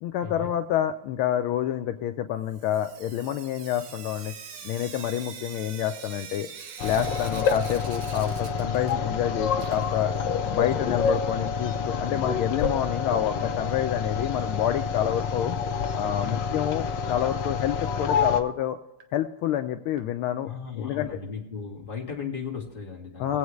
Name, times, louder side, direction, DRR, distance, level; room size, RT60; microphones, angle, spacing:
voice 1, 0.0-4.3 4.6-6.5 6.8-10.1 10.5-15.6 15.9-18.8 19.1-20.5 20.8-21.1 23.2-23.4, left 10 dB, 80° left, 7 dB, 1.5 m, -28 dB
Sink (filling or washing) / Drip, 2.5-9.2 9.5-11.4 12.6-12.7 13.0-13.1 13.4-13.5 16.4-16.5 17.0-17.1 17.6-17.7 18.3-18.4 19.0-19.1 20.0-20.1, right 7 dB, 80° right, 1.9 m, -44 dB
sound 1, 6.8-18.4, left 6 dB, 65° left, 1.3 m, -28 dB
voice 2, 20.4-23.4, left 6 dB, 25° left, -2 dB, 2.0 m, -36 dB
21.5 x 8.0 x 3.2 m, 0.91 s
omnidirectional pair, 2.4 m